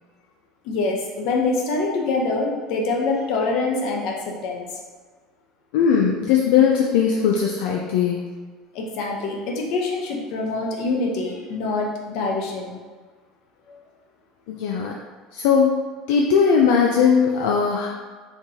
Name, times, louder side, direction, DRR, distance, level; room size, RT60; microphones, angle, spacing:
voice 1, 0.6-4.6 8.7-12.8 13.7-13.8, left 3 dB, 65° left, 0 dB, 0.8 m, -25 dB
voice 2, 5.7-8.3 14.5-14.9 15.3-15.7 16.1-17.9, left 6 dB, 85° left, -1 dB, 0.4 m, -19 dB
4.5 x 3.7 x 2.8 m, 1.4 s
cardioid pair, 135°, 0 cm